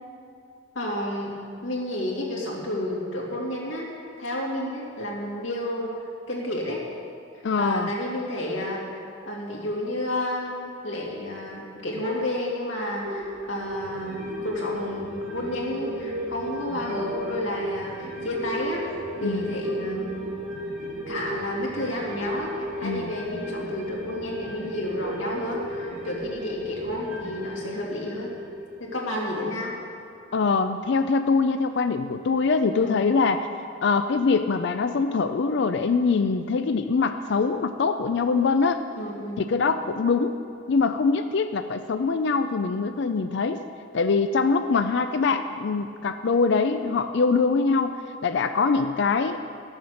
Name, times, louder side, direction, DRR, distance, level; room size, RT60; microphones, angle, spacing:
voice 1, 0.7-1.4 1.6-3.9 4.2-5.9 6.3-6.8 7.3-9.0 9.3-20.3 21.1-28.3 28.8-29.8 32.7-33.1 38.9-39.4, left 1 dB, 85° left, -3 dB, 2.5 m, -31 dB
voice 2, 7.4-7.9 19.2-19.5 22.8-23.1 30.3-33.5 33.8-38.8 39.4-40.4 40.7-43.6 43.9-49.4, left 4 dB, 60° left, 8 dB, 0.4 m, -23 dB
sound 1, 13.0-29.8 30.2-30.3, equal, 80° right, 2.6 m, -34 dB
13.5 x 7.2 x 6.4 m, 2.4 s
head